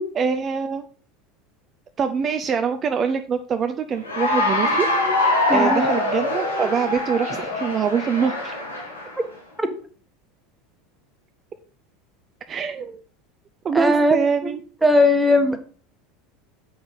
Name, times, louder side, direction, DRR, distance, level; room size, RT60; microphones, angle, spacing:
voice 1, 0.2-0.8 2.0-4.9 5.5-8.5 12.5-13.0 13.6-14.6, right 6 dB, 35° right, 7 dB, 0.7 m, -24 dB
Cheering / Applause, 4.0-9.2, left 2 dB, 90° left, 2.3 m, -23 dB
voice 2, 5.5-5.8 9.6-9.7 13.7-14.5 14.8-15.6, left 1 dB, 10° right, 6 dB, 1.5 m, -18 dB
7.8 x 6.1 x 5.3 m, 0.43 s
figure-of-eight pair, 75°, 0 cm